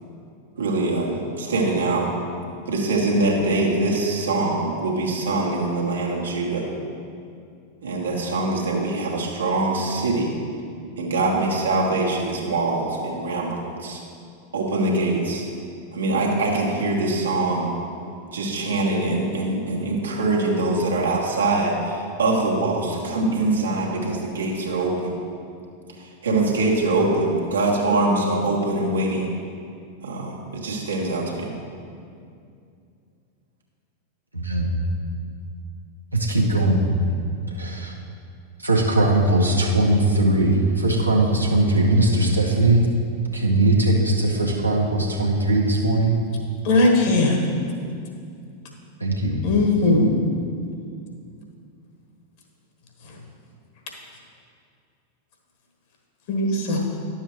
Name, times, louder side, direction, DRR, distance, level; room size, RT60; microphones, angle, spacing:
voice 1, 0.5-2.1 2.7-6.7 7.8-10.3 11.0-14.0 14.5-15.5 15.9-17.7 18.3-25.1 26.0-29.3 30.0-31.5, right 2 dB, 70° right, -2 dB, 1.4 m, -23 dB
voice 2, 34.3-34.7 36.1-36.9 37.5-37.9 38.6-42.8 43.3-46.2 49.0-49.3, right 2 dB, 85° right, -2 dB, 1.0 m, -20 dB
voice 3, 46.6-47.4 49.4-50.1 56.3-56.8, left 2 dB, 50° left, 0 dB, 1.4 m, -19 dB
11.0 x 7.2 x 3.2 m, 2.4 s
figure-of-eight pair, 90°, 0 cm